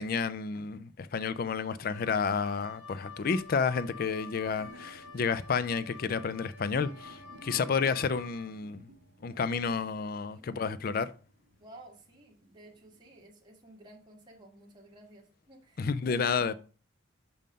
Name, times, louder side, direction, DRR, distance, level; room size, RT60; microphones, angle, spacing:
voice 1, 0.0-8.9 9.2-11.1 15.8-16.5, left 5 dB, 45° left, 0.4 m, -31 dB
sound 1, 1.6-1.7 2.5-2.7 3.1-3.2 3.5-13.2, right 2 dB, 80° right, 1.1 m, -56 dB
Wind instrument woodwind instrument, 1.8-8.5, left 5 dB, 65° left, 2.5 m, -49 dB
voice 2, 10.2-10.7 11.6-16.5, right 1 dB, 20° right, 1.8 m, -53 dB
5.5 x 5.3 x 5.1 m
head